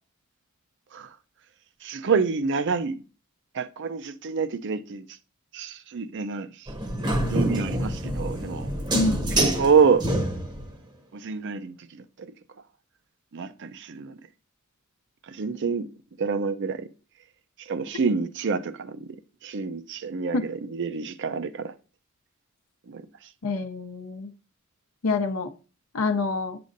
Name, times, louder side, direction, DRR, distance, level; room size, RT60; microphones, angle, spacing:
voice 1, 1.8-3.0 3.5-5.0 5.5-6.5 7.3-8.7 9.6-10.0 11.1-12.0 13.3-14.1 15.3-15.9 16.2-16.9 17.7-19.0 19.4-21.7 22.9-23.0, right 5 dB, 55° right, 0.5 m, -27 dB
sound 1, 6.7-10.7, right 1 dB, 20° right, 0.8 m, -26 dB
voice 2, 23.4-24.3 25.0-25.5 25.9-26.6, left 3 dB, 70° left, 0.6 m, -26 dB
8.2 x 6.8 x 2.6 m
head